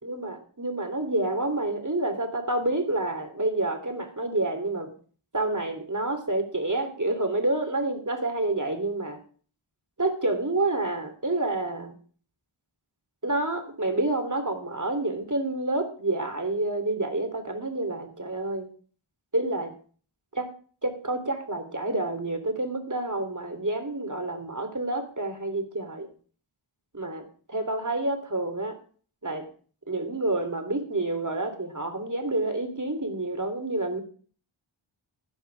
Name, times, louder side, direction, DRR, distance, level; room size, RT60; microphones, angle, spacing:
voice 1, 0.0-4.9 5.3-9.2 10.0-11.9 13.2-18.7 19.3-19.7 20.4-20.5 20.8-26.1 26.9-28.7 29.2-29.5 29.9-34.0, right 2 dB, 35° right, 7 dB, 3.3 m, -28 dB
16.0 x 10.5 x 3.5 m, 0.42 s
wide cardioid pair, 55°, 49 cm